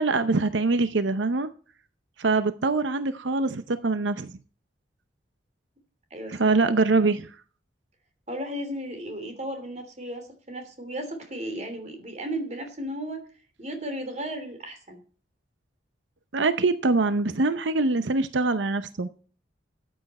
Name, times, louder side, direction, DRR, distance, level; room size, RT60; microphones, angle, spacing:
voice 1, 0.0-1.5 2.2-4.3 6.3-7.3 16.3-19.1, right 3 dB, 90° right, 0.7 m, -24 dB
voice 2, 6.1-6.5 8.3-13.3 13.6-15.0, right 1 dB, 40° right, 3.0 m, -35 dB
13.5 x 8.9 x 4.2 m
head